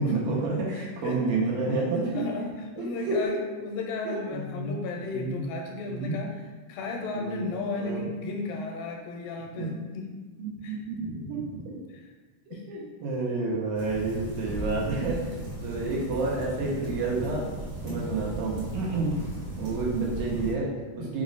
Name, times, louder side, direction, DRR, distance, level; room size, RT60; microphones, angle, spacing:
voice 1, 0.0-2.1 2.8-3.3 4.1-4.9 5.1-5.4 5.9-6.2 7.1-7.4 7.8-8.0 9.6-9.7 10.4-11.7 12.5-15.2 15.6-17.5 17.8-19.1 19.6-21.2, right 3 dB, 90° right, -4 dB, 2.7 m, -30 dB
voice 2, 0.7-1.2 1.7-10.1 10.6-10.8 11.9-12.0 12.5-12.6 15.3-15.4 17.9-18.2 18.9-19.1 21.0-21.2, left 3 dB, 90° left, 1 dB, 2.4 m, -35 dB
sound 1, 13.7-20.5, right 1 dB, 70° right, 0.7 m, -36 dB
5.9 x 2.1 x 3.9 m, 1.3 s
omnidirectional pair, 3.9 m